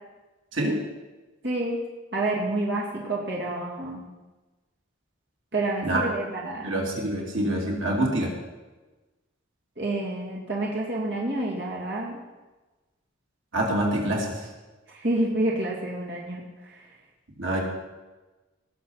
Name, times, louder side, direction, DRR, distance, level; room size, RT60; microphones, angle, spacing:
voice 1, 1.4-1.8 2.1-4.0 5.5-6.7 9.8-12.2 14.9-16.8, right 2 dB, 60° right, -4 dB, 2.3 m, -28 dB
voice 2, 6.6-8.3 13.5-14.4 17.4-17.6, right 1 dB, 85° right, -2 dB, 2.7 m, -26 dB
18.5 x 6.8 x 5.6 m, 1.2 s
head